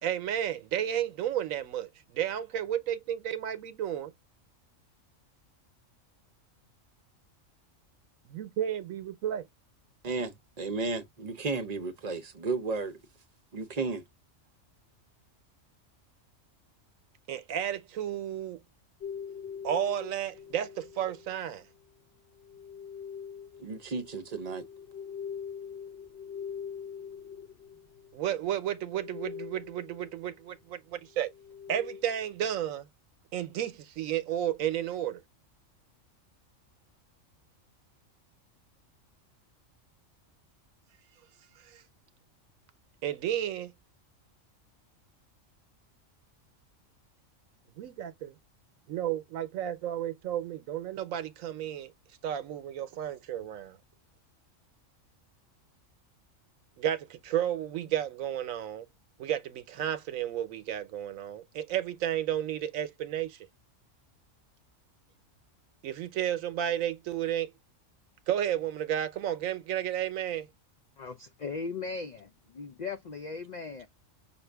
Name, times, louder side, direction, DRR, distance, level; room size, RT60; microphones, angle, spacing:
voice 1, 0.0-4.1 8.3-9.4 17.3-18.6 19.6-21.7 28.1-31.3 31.7-32.9 33.3-35.2 41.6-41.8 43.0-43.7 47.8-48.3 48.9-51.9 52.2-53.8 56.8-58.9 59.2-63.4 65.8-67.5 68.3-70.5, right 10 dB, 90° right, 1.1 m, -32 dB
voice 2, 10.0-13.0 13.5-14.0 23.6-24.6, right 3 dB, 40° right, 0.7 m, -33 dB
sound 1, 19.0-21.4 22.4-28.4 28.7-30.2 31.1-32.2, left 7 dB, 55° left, 1.0 m, -43 dB
voice 3, 71.0-73.9, left 4 dB, 75° left, 0.4 m, -38 dB
5.9 x 2.5 x 3.4 m
omnidirectional pair, 1.4 m